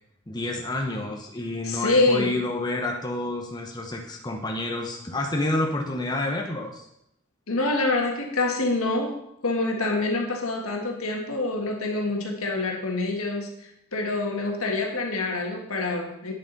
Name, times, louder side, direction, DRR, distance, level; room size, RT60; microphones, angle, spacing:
voice 1, 0.3-6.9, left 2 dB, 20° left, 1 dB, 0.8 m, -29 dB
voice 2, 1.6-2.3 7.5-13.5 13.9-16.3, left 2 dB, 80° left, 2 dB, 1.6 m, -26 dB
8.7 x 7.2 x 4.0 m, 0.78 s
head